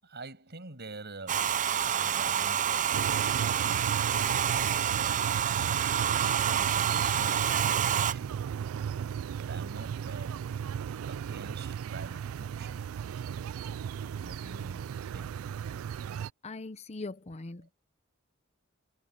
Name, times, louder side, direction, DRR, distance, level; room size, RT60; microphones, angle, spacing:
voice 1, 0.0-1.6 1.9-3.9 4.3-6.3 6.5-8.4 9.3-10.4 11.0-12.9 13.6-15.4 17.6-17.7, right 3 dB, 55° right, 6.9 m, -47 dB
Domestic sounds home sounds, 1.3-8.1, right 9 dB, 40° right, 0.5 m, -28 dB
sound 1, 2.9-16.3, right 8 dB, 85° right, 0.3 m, -35 dB
voice 2, 16.4-17.7, left 3 dB, 30° left, 0.7 m, -41 dB
head